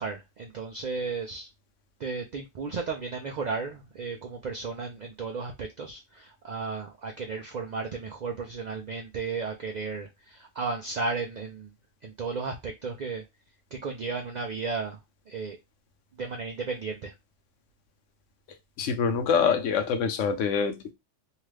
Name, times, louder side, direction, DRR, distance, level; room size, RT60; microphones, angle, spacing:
voice 1, 0.0-1.5 2.0-11.7 12.0-13.2 13.7-15.0 15.3-15.6 16.2-17.1, right 4 dB, 70° right, 0.4 m, -34 dB
voice 2, 18.8-20.9, left 6 dB, 80° left, 0.9 m, -25 dB
2.7 x 2.3 x 3.2 m
omnidirectional pair, 1.3 m